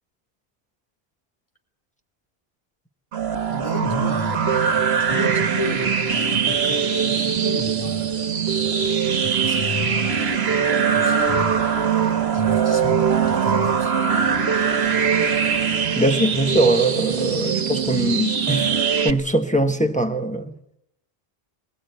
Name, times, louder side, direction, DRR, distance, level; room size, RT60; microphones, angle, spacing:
sound 1, 3.1-19.1, right 7 dB, 80° right, 1.4 m, -21 dB
voice 1, 3.5-4.6 5.1-9.0 9.2-10.4 10.9-12.0 12.3-14.0, left 3 dB, 30° left, 4.4 m, -33 dB
Race car auto racing / Idling / Accelerating revving vroom, 4.3-18.8, equal, 50° left, 6.1 m, -42 dB
voice 2, 16.0-18.7 19.0-20.6, right 1 dB, 5° left, 1.3 m, -21 dB
21.5 x 20.0 x 9.5 m
omnidirectional pair, 1.1 m